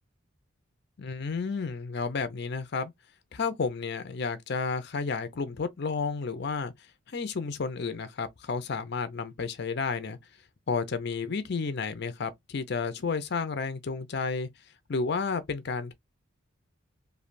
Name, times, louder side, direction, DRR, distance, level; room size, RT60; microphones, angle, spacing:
voice 1, 1.0-2.9 3.3-6.7 7.1-10.2 10.7-14.5 14.9-15.9, left 4 dB, 55° left, 0.5 m, -31 dB
3.2 x 2.4 x 2.5 m
head